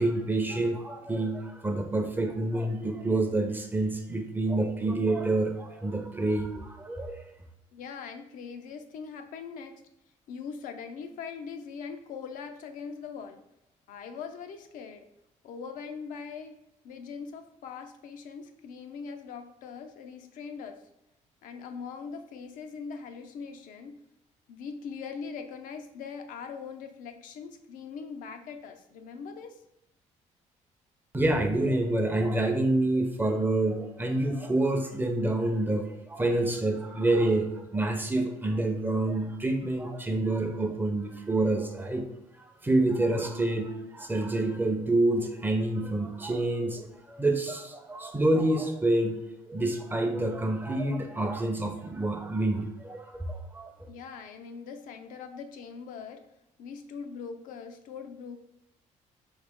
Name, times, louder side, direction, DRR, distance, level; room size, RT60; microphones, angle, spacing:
voice 1, 0.0-7.2 31.1-42.1 42.4-49.2 49.5-53.7, right 2 dB, 15° right, 5 dB, 0.5 m, -27 dB
voice 2, 7.7-9.8 10.3-13.4 13.9-15.1 15.4-20.8 21.4-24.0 24.5-29.6 53.9-56.3 56.6-58.4, left 5 dB, 80° left, 6 dB, 0.5 m, -41 dB
4.0 x 2.9 x 3.5 m, 0.84 s
cardioid pair, 105°, 13 cm